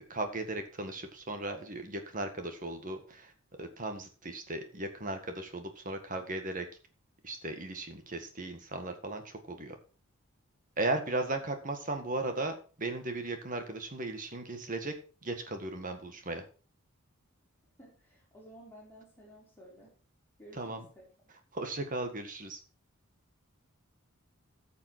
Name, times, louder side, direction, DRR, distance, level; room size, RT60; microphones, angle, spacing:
voice 1, 0.1-3.3 3.6-6.7 7.2-9.8 10.8-14.9 15.2-16.5 20.5-20.9 21.5-22.6, right 2 dB, 35° right, 6 dB, 1.7 m, -36 dB
voice 2, 17.8-19.9 20.4-21.1, right 1 dB, 10° left, -5 dB, 5.3 m, -54 dB
13.5 x 7.1 x 4.6 m, 0.36 s
head